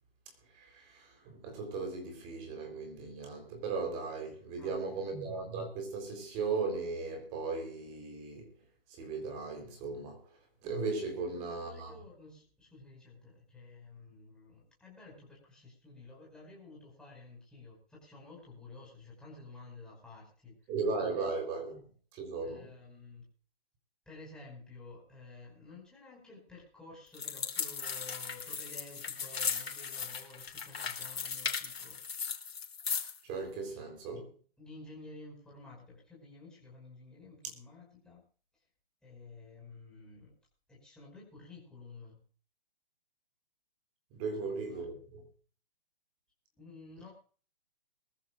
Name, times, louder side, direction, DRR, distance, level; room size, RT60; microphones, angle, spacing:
voice 1, 0.5-8.5 8.9-10.3 10.6-11.9 20.7-21.8 22.1-22.7 33.2-34.3 44.1-45.2, right 4 dB, 20° right, 3.8 m, -37 dB
voice 2, 4.6-5.1 11.1-20.6 21.1-21.3 22.4-23.3 24.1-32.0 33.7-33.9 34.6-38.2 39.0-40.4 40.7-42.2 44.4-44.8 46.6-47.1, left 3 dB, ahead, 5.4 m, -52 dB
sound 1, 27.1-33.2, left 6 dB, 85° left, 3.3 m, -37 dB
22.5 x 14.5 x 2.5 m
hypercardioid pair, 165°, 30 cm